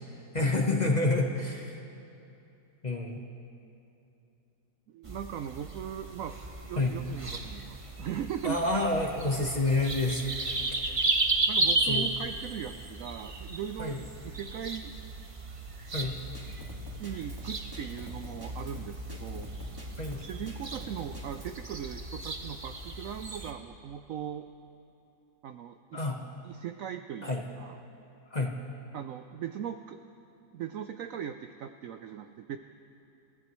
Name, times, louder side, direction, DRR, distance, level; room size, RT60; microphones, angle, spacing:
voice 1, 0.3-1.8 2.8-3.2 6.8-7.0 8.4-11.0 11.9-12.1 13.8-14.0 15.9-16.2 20.0-20.2 25.9-26.2 27.2-27.4 28.3-28.6, left 2 dB, 30° left, 1 dB, 0.9 m, -29 dB
voice 2, 4.9-8.6 11.5-14.9 17.0-19.5 20.2-24.5 25.4-26.1 26.4-27.8 28.9-30.0 30.5-32.6, right 9 dB, 85° right, 8 dB, 0.7 m, -39 dB
sound 1, 5.0-23.5, right 2 dB, 30° right, 0.6 m, -34 dB
Drum kit, 16.0-21.6, right 1 dB, 10° right, 1.8 m, -47 dB
29.0 x 15.0 x 3.1 m, 2.8 s
omnidirectional pair, 2.0 m